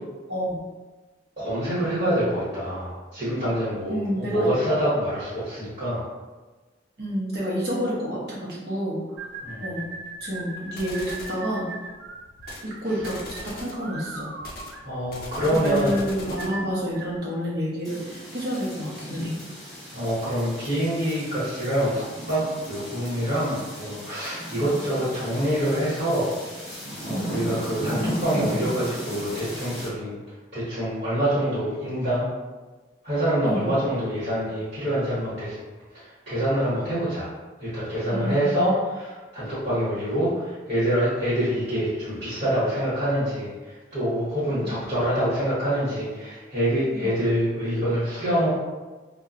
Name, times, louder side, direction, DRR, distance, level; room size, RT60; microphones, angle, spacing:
voice 1, 0.3-0.6 3.9-4.5 7.0-9.3 9.6-9.8 10.2-11.7 12.6-14.3 15.6-19.3 24.6-24.7 27.0-27.3 33.4-33.7 38.1-38.4 44.5-44.7 46.9-47.1, equal, 55° right, -6 dB, 0.8 m, -29 dB
voice 2, 1.4-6.0 9.4-9.7 14.8-16.0 19.9-26.3 27.0-30.2 30.5-32.3 33.0-35.6 35.9-37.3 37.6-48.5, equal, 40° right, -13 dB, 1.3 m, -26 dB
sound 1, 9.2-17.2, right 3 dB, 75° right, 0.4 m, -39 dB
sound 2, 10.8-11.4 12.4-12.7 13.0-13.8 14.4-16.6, left 2 dB, 50° left, 0.5 m, -40 dB
sound 3, 17.8-29.9, equal, ahead, 0.7 m, -35 dB
2.8 x 2.2 x 2.4 m, 1.3 s
head